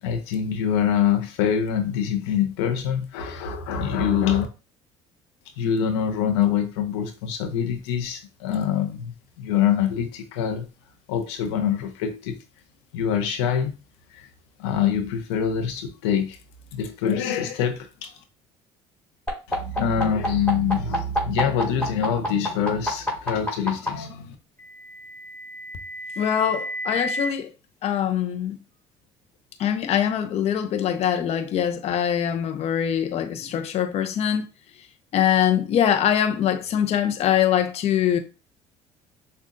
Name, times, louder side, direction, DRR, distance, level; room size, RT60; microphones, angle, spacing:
voice 1, 0.0-4.5 5.6-10.7 11.1-12.4 12.9-13.8 14.1-14.3 14.6-16.4 16.7-18.2 19.5-24.4, left 8 dB, 90° left, 0.7 m, -25 dB
sound 1, 19.3-23.9 25.0-27.3, equal, 10° left, 2.0 m, -28 dB
voice 2, 26.2-27.5 27.8-28.6 29.6-34.5 35.1-38.2, left 9 dB, 50° left, 0.6 m, -23 dB
6.4 x 2.3 x 2.6 m
supercardioid pair, 85°, 13 cm